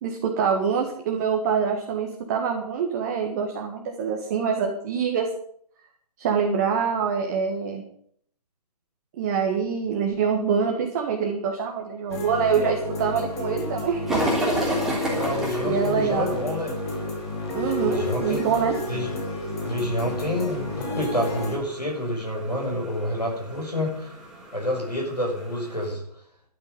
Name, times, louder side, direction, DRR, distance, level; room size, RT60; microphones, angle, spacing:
voice 1, 0.0-5.3 6.2-7.8 9.2-14.2 15.6-16.4 17.5-18.8, right 6 dB, 25° right, 2 dB, 1.7 m, -25 dB
sound 1, 12.1-21.6, left 2 dB, 40° left, 4.8 m, -30 dB
sound 2, 14.1-25.9, right 1 dB, ahead, 3.3 m, -34 dB
voice 2, 15.0-16.7 17.8-18.4 18.9-19.1 19.6-24.1 24.5-26.0, left 1 dB, 90° left, -1 dB, 6.6 m, -28 dB
12.0 x 9.2 x 9.2 m, 0.64 s
figure-of-eight pair, 140°, 20 cm